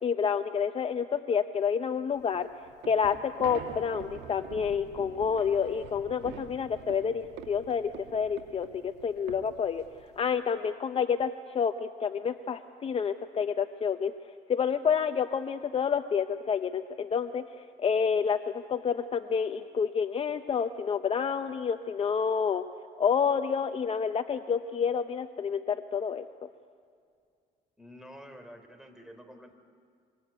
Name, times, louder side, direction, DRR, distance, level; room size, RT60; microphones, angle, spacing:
voice 1, 0.0-2.5 2.8-9.8 10.2-14.1 14.5-22.6 23.0-26.5, left 6 dB, 35° left, 8 dB, 0.8 m, -29 dB
sound 1, 2.2-10.3, right 8 dB, 90° right, 2.2 m, -46 dB
voice 2, 27.8-29.6, equal, 5° right, 6 dB, 3.5 m, -49 dB
24.0 x 24.0 x 9.4 m, 2.3 s
cardioid pair, 110°, 17 cm